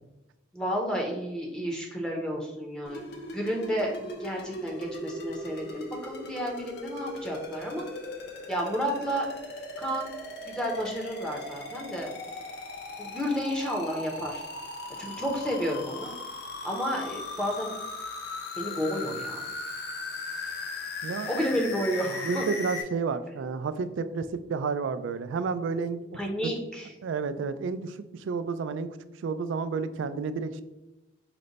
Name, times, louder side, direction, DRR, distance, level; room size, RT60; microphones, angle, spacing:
voice 1, 0.5-3.0 3.3-7.9 8.5-9.3 9.8-10.1 10.5-12.1 13.0-14.4 14.9-16.1 16.6-17.7 18.6-19.5 21.3-22.4 26.1-26.9, equal, 5° left, -1 dB, 0.6 m, -31 dB
sound 1, 2.9-22.8, left 2 dB, 55° left, 0.7 m, -38 dB
voice 2, 22.2-26.2 27.0-29.0 29.2-30.6, right 5 dB, 85° right, 12 dB, 0.3 m, -31 dB
5.0 x 2.2 x 3.9 m, 1.0 s
head